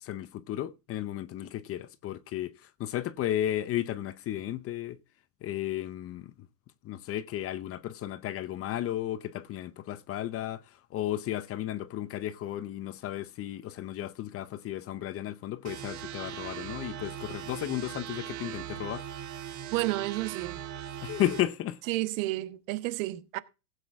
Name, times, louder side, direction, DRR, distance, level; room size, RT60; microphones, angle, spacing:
voice 1, 0.0-5.0 5.4-6.3 6.8-10.6 10.9-19.1 21.0-21.8, left 12 dB, 30° left, 0.7 m, -34 dB
sound 1, 15.6-21.4, right 11 dB, 35° right, 1.9 m, -40 dB
voice 2, 19.7-20.6 21.9-23.4, right 18 dB, 55° right, 1.2 m, -31 dB
16.0 x 8.3 x 3.5 m
supercardioid pair, 130°, 47 cm